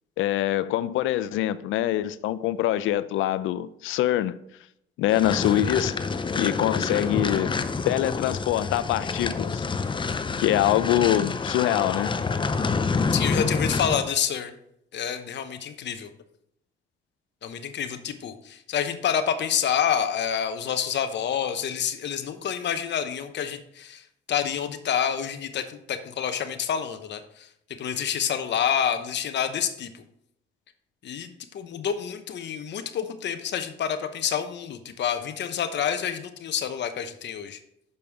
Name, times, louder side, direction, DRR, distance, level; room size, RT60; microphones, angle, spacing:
voice 1, 0.2-4.4 5.0-6.0 6.4-7.5 7.9-9.6 10.4-12.1, left 13 dB, 90° left, 0.4 m, -24 dB
sound 1, 5.1-14.1, left 4 dB, 25° left, 0.5 m, -27 dB
voice 2, 13.1-14.5 14.9-16.1 17.4-27.5 27.8-30.0 31.0-37.6, left 8 dB, 60° left, 0.9 m, -28 dB
6.8 x 5.4 x 4.6 m
cardioid pair, 90°, 20 cm